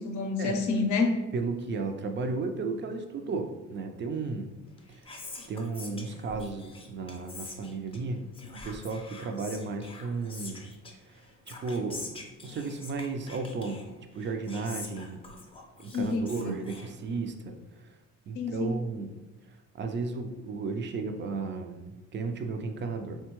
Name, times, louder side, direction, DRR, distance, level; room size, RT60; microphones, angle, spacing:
voice 1, 0.0-1.2 15.9-16.6 18.3-18.8, left 3 dB, 75° left, 4 dB, 0.5 m, -28 dB
voice 2, 1.3-4.6 4.9-5.0 5.5-8.3 8.6-10.7 11.5-12.1 12.4-15.2 15.8-17.6 18.3-19.1 19.7-23.2, right 4 dB, 40° right, 6 dB, 0.4 m, -34 dB
Whispering, 4.6-17.5, left 2 dB, 20° left, 0.5 m, -46 dB
3.6 x 2.2 x 2.9 m, 1.1 s
cardioid pair, 90°, 30 cm